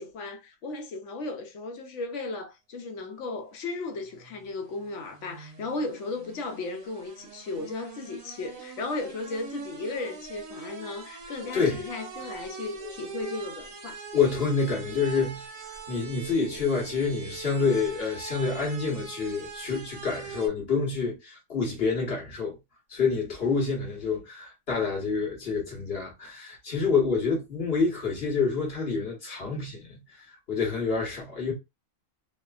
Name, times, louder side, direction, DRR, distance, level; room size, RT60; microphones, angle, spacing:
voice 1, 0.0-14.0, left 3 dB, 70° left, 0.9 m, -35 dB
sound 1, 3.7-20.5, right 5 dB, 85° right, 1.1 m, -43 dB
voice 2, 14.1-15.4 15.9-22.6 22.9-30.0 30.5-31.5, left 5 dB, 50° left, 1.2 m, -27 dB
3.1 x 2.1 x 2.3 m
omnidirectional pair, 1.4 m